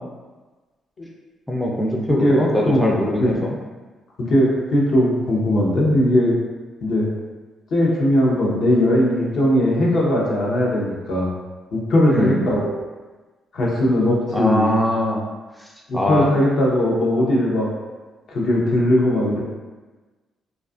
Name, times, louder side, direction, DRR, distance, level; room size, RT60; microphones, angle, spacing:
voice 1, 1.5-3.5 12.1-12.4 14.3-15.2 15.6-15.7 15.9-16.3, left 1 dB, ahead, -2 dB, 0.3 m, -21 dB
voice 2, 2.1-2.4 2.7-3.3 4.2-6.3 6.8-7.1 7.7-11.3 11.7-12.7 13.5-14.8 15.9-17.7 18.3-19.4, left 1 dB, 60° left, -4 dB, 0.7 m, -19 dB
2.6 x 2.3 x 2.3 m, 1.3 s
cardioid pair, 90°, 0 cm